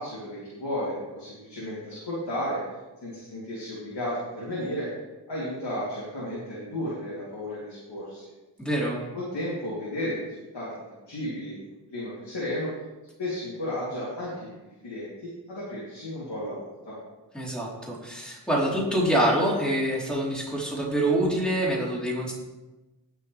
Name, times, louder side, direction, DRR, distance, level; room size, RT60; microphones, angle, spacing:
voice 1, 0.0-2.6 3.0-4.9 5.3-8.2 9.1-11.6 11.9-12.7 13.2-16.9, left 1 dB, 70° left, -8 dB, 3.4 m, -33 dB
voice 2, 8.6-9.0 17.3-22.3, right 1 dB, ahead, -5 dB, 4.3 m, -26 dB
17.0 x 6.8 x 3.6 m, 1.1 s
cardioid pair, 45°, 43 cm